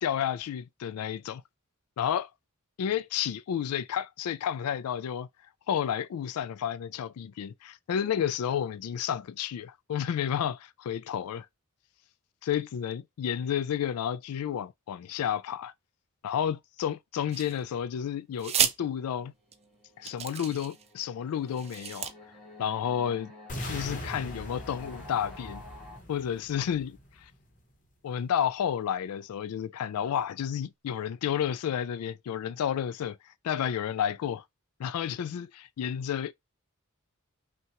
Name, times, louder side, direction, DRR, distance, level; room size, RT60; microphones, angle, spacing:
voice 1, 0.0-1.4 2.0-2.3 2.8-5.3 5.7-11.5 12.4-15.7 16.2-19.3 20.0-22.1 22.6-23.3 23.6-25.6 26.1-27.0 28.0-33.2 33.4-34.4 34.8-36.3, left 9 dB, 75° left, 0.3 m, -31 dB
sound 1, 17.3-17.8 18.4-18.8 19.5-19.6 20.0-20.9 21.5-22.1, right 9 dB, 30° right, 0.4 m, -31 dB
sound 2, 19.3-26.0, left 2 dB, ahead, 1.5 m, -50 dB
sound 3, 23.5-27.5, left 1 dB, 35° left, 1.0 m, -41 dB
5.6 x 2.3 x 2.9 m
head